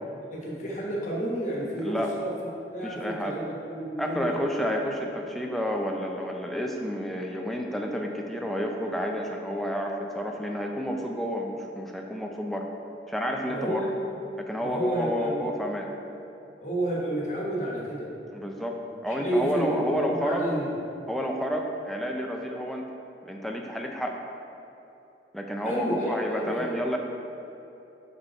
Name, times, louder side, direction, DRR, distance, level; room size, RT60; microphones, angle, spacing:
voice 1, 0.0-2.3 2.7-4.3 13.5-13.9 14.6-15.4 16.6-18.1 19.1-20.7 25.6-26.8, right 1 dB, 40° left, -4 dB, 1.3 m, -30 dB
voice 2, 1.8-2.2 2.8-3.4 4.0-12.7 13.1-13.9 14.4-15.9 18.3-20.5 21.1-22.9 23.2-24.2 25.3-27.0, equal, ahead, 1 dB, 0.4 m, -30 dB
5.6 x 5.3 x 4.4 m, 2.9 s
head